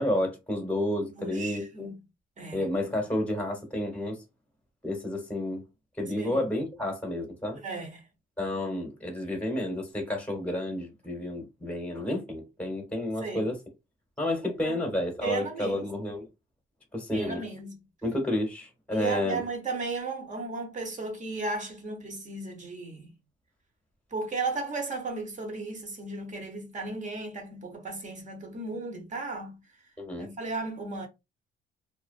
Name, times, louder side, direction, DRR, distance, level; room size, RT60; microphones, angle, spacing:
voice 1, 0.0-1.9 2.5-4.2 4.8-5.6 6.0-7.6 8.4-13.6 14.2-16.3 16.9-17.4 18.0-19.4 30.0-30.3, left 1 dB, 5° left, 1.1 m, -30 dB
voice 2, 1.2-2.0 2.4-2.6 6.1-6.4 7.6-8.0 13.2-13.4 14.4-14.8 15.2-15.9 17.1-17.8 18.9-23.1 24.1-29.6 30.2-31.1, right 3 dB, 40° right, 1.1 m, -35 dB
2.6 x 2.2 x 2.5 m
cardioid pair, 90°, 20 cm